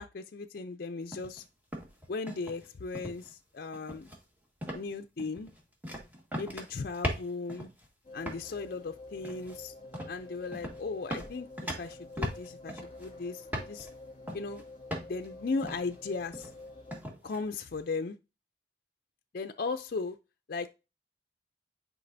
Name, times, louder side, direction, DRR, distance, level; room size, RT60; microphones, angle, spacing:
voice 1, 0.0-1.4 2.1-4.1 4.7-5.5 6.4-7.7 8.1-9.7 10.1-11.5 11.8-13.9 14.3-14.6 15.1-16.5 17.2-18.2 19.3-20.2 20.5-20.7, left 4 dB, 55° left, 0.4 m, -37 dB
sound 1, 1.1-1.4 1.7-2.7 2.9-3.3 3.7-4.2 4.6-4.9 5.2-7.9 8.2-8.5 9.2-9.6 9.9-10.2 10.5-10.8 11.1-13.1 13.5-13.9 14.3-14.6 14.9-15.3 15.6-15.9 16.3-16.6 16.9-17.4, equal, 10° right, 1.7 m, -38 dB
sound 2, 8.0-17.0, left 2 dB, 35° left, 2.5 m, -49 dB
9.9 x 4.9 x 2.6 m
head